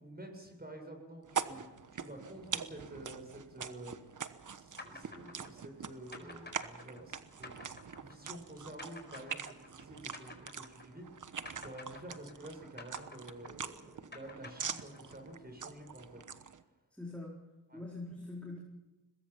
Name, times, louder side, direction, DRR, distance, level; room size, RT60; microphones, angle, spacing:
voice 1, 0.0-1.6 1.9-7.6 8.0-16.2 17.7-17.8, right 1 dB, 25° right, 3 dB, 7.5 m, -50 dB
sound 1, 1.2-16.6, right 7 dB, 50° right, 1.2 m, -44 dB
sound 2, 4.8-11.2 11.5-15.3, left 2 dB, 25° left, 4.7 m, -50 dB
voice 2, 16.9-17.4 17.7-18.6, left 2 dB, 5° left, -3 dB, 4.4 m, -43 dB
22.0 x 21.5 x 5.9 m, 1.1 s
cardioid pair, 65°, 40 cm